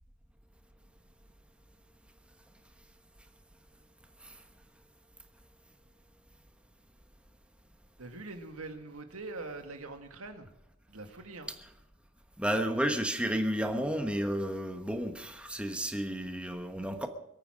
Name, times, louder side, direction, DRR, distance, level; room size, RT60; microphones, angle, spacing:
voice 1, 8.0-10.5 10.9-11.5, right 3 dB, 85° right, 6 dB, 2.0 m, -43 dB
voice 2, 12.4-17.1, equal, 5° right, 6 dB, 1.1 m, -32 dB
22.0 x 9.1 x 6.3 m, 0.80 s
head